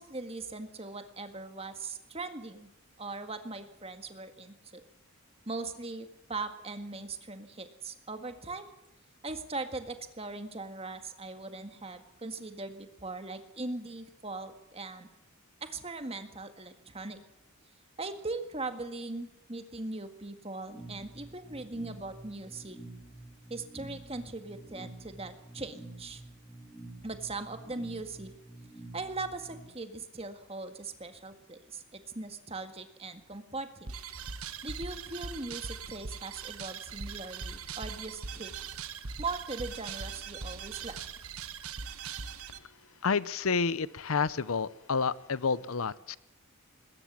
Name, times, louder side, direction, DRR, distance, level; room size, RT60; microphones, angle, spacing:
voice 1, 0.0-2.7 3.0-4.8 5.5-8.7 9.2-15.1 15.6-17.2 18.0-22.8 23.5-26.2 27.0-28.3 28.9-33.9 34.6-38.5 39.2-41.0, right 3 dB, 25° right, 8 dB, 1.9 m, -40 dB
sound 1, 20.7-29.7, right 2 dB, 5° left, 4.2 m, -49 dB
sound 2, 33.9-42.6, right 5 dB, 85° right, 1.4 m, -41 dB
voice 2, 43.0-46.2, left 5 dB, 75° left, 18 dB, 0.7 m, -29 dB
21.0 x 18.0 x 7.4 m, 0.89 s
head